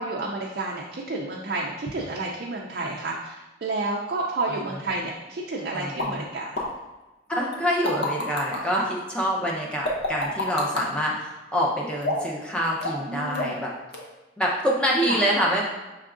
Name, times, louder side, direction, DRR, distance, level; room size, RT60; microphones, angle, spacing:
voice 1, 0.0-6.6 8.7-8.8 13.0-13.5 15.1-15.2, right 2 dB, 50° right, -2 dB, 0.4 m, -30 dB
voice 2, 5.7-6.3 7.3-13.7 14.4-15.6, equal, 5° left, -3 dB, 0.6 m, -26 dB
sound 1, 6.0-6.1 6.6-6.7 7.5-8.6 9.8-10.9 12.0-12.4 12.8-13.1 13.3-13.7 13.9-14.0, left 2 dB, 55° left, 0.8 m, -27 dB
5.6 x 3.5 x 2.5 m, 1.1 s
head